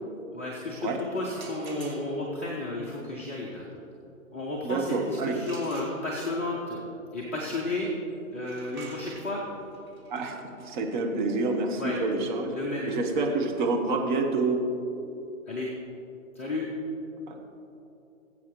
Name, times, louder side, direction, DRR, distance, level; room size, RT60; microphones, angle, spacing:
voice 1, 0.3-3.6 4.3-6.8 7.1-7.9 8.3-9.4 11.8-12.0 12.5-12.9 15.5-15.7 16.3-16.7, left 2 dB, 10° left, -6 dB, 0.4 m, -32 dB
sound 1, 1.2-2.4 5.4-6.5 8.3-14.0, right 3 dB, 85° right, 2.5 m, -49 dB
voice 2, 4.6-5.4 10.1-12.5 12.9-14.6 17.3-17.4, right 3 dB, 35° right, 2 dB, 1.3 m, -28 dB
19.0 x 8.2 x 3.1 m, 2.8 s
figure-of-eight pair, 130°, 42 cm